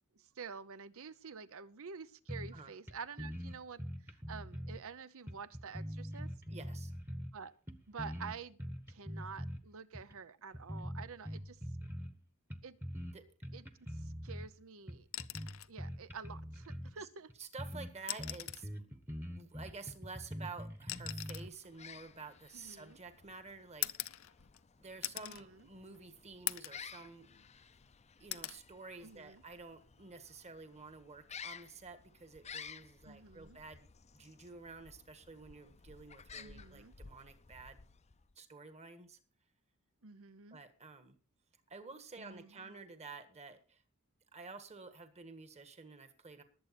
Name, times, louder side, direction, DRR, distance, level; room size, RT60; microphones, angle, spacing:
voice 1, 0.1-6.3 7.3-7.5 7.9-8.6 8.9-11.6 12.6-12.8 13.5-15.1 15.7-17.3 22.5-23.0 25.2-25.7 29.0-29.4 33.0-33.6 36.4-36.9 40.0-40.6 42.2-42.7, right 5 dB, 65° right, 15 dB, 0.8 m, -49 dB
sound 1, 2.3-2.6 2.9-3.0 3.2-4.8 5.3-7.4 7.7-9.6 9.9-10.1 10.5-12.2 12.5-13.1 13.4-14.5 14.9-16.9 17.3-17.4 17.6-17.9 18.2-21.5, equal, 10° right, 1.1 m, -43 dB
voice 2, 6.5-6.9 13.1-13.3 16.9-17.1 17.4-24.3 24.8-27.4 28.2-37.8 38.3-39.2 40.5-41.2 41.7-43.8 44.3-46.4, right 4 dB, 30° right, 8 dB, 1.6 m, -51 dB
sound 2, 15.0-15.8 17.2-17.3 18.0-18.8 19.9-23.0 23.8-24.7 25.0-25.4 25.9-26.0 26.5-26.9 27.3-27.9 28.3-28.6 30.1-30.3, left 15 dB, 65° left, 0.7 m, -42 dB
sound 3, 21.6-38.3, left 6 dB, 30° left, 0.6 m, -55 dB
20.5 x 8.0 x 4.2 m, 0.39 s
head